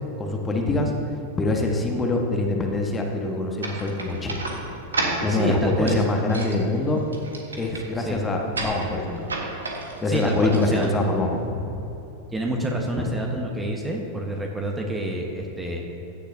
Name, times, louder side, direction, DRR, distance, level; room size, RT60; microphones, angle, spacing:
voice 1, 0.2-0.9 1.4-4.4 5.2-7.0 7.6-9.3 10.0-11.8 13.0-13.1, left 2 dB, 15° left, 1 dB, 1.3 m, -24 dB
sound 1, 3.6-11.4, right 2 dB, 75° right, 1.4 m, -33 dB
voice 2, 5.3-6.0 8.0-8.2 10.1-10.9 12.3-15.8, right 1 dB, 10° right, 0 dB, 1.1 m, -28 dB
15.5 x 10.0 x 2.7 m, 2.9 s
figure-of-eight pair, 90°, 0 cm